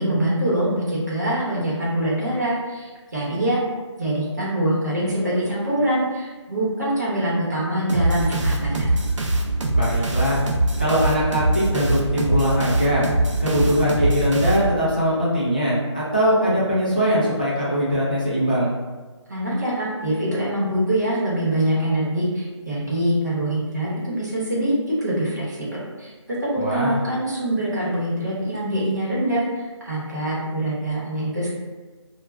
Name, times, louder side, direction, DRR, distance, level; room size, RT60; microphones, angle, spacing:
voice 1, 0.0-3.6 4.0-8.9 19.3-24.7 25.0-31.5, right 1 dB, 35° right, -7 dB, 0.9 m, -24 dB
sound 1, 7.9-15.1, right 1 dB, 75° right, 0.5 m, -23 dB
voice 2, 9.7-10.4 10.8-13.0 13.4-18.7 26.6-27.0, equal, 15° left, -9 dB, 0.4 m, -21 dB
2.3 x 2.1 x 3.1 m, 1.3 s
figure-of-eight pair, 175°, 16 cm